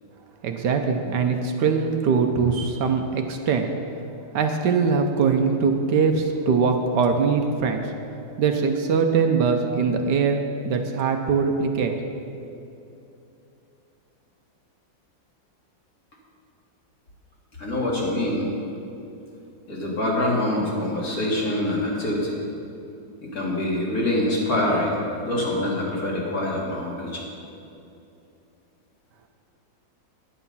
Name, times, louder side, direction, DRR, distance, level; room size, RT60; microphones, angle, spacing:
voice 1, 0.4-3.7 4.3-7.9 8.4-11.9, right 5 dB, 70° right, 5 dB, 1.3 m, -22 dB
voice 2, 17.6-18.5 19.7-22.4 23.3-27.3, left 1 dB, 50° left, -4 dB, 2.6 m, -25 dB
10.0 x 9.5 x 5.5 m, 2.8 s
omnidirectional pair, 2.0 m